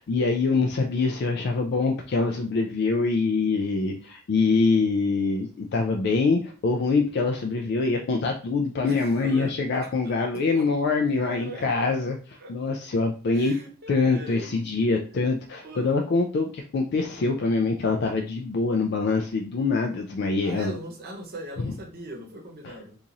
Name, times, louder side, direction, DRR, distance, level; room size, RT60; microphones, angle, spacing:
voice 1, 0.0-13.6 13.9-20.7 21.6-21.8, left 3 dB, 50° left, 3 dB, 0.3 m, -24 dB
voice 2, 8.8-9.5 9.8-10.7 11.1-11.6 12.4-12.5 13.3-15.3 15.6-16.0 20.4-23.0, right 1 dB, 45° right, 1 dB, 0.9 m, -41 dB
2.9 x 2.5 x 3.9 m, 0.40 s
head